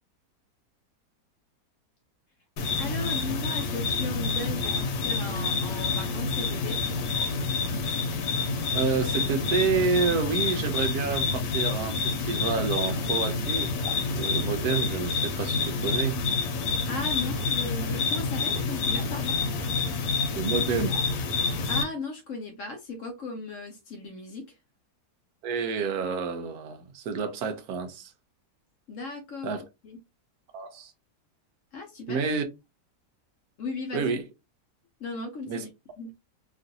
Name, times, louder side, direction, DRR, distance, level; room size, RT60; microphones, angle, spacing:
sound 1, 2.6-21.8, left 4 dB, 85° left, 1.3 m, -28 dB
voice 1, 2.7-6.8 16.9-19.4 21.7-24.6 28.9-29.6 29.8-30.0 31.7-32.3 33.6-34.1 35.0-35.7 36.0-36.1, left 3 dB, 65° left, 0.8 m, -36 dB
voice 2, 8.7-13.7 14.1-16.2 20.3-21.0 25.4-28.1 29.4-29.6 30.5-30.9 32.1-32.5 33.9-34.2 35.5-35.6, right 5 dB, 70° right, 1.1 m, -29 dB
3.0 x 2.5 x 2.6 m
omnidirectional pair, 1.8 m